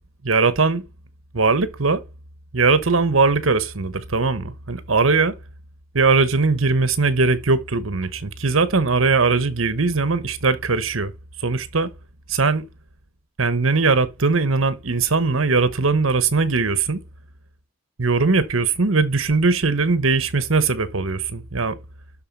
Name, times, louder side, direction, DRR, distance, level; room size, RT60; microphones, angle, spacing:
voice 1, 0.2-0.8 1.3-2.0 2.5-5.3 5.9-11.1 11.4-11.9 12.3-12.6 13.4-17.0 18.0-21.8, right 4 dB, 75° right, 1.1 m, -20 dB
12.0 x 4.1 x 5.3 m
head